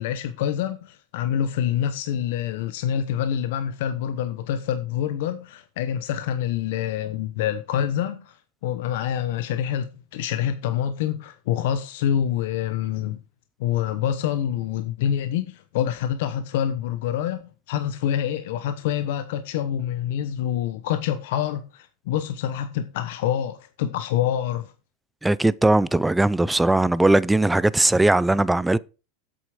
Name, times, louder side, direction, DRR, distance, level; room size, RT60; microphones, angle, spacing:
voice 1, 0.0-8.4 8.6-13.2 13.6-17.4 17.7-24.7, left 10 dB, 70° left, 0.9 m, -26 dB
voice 2, 25.2-28.8, right 2 dB, 5° right, 0.4 m, -19 dB
8.2 x 7.8 x 4.9 m
supercardioid pair, 125°, 0 cm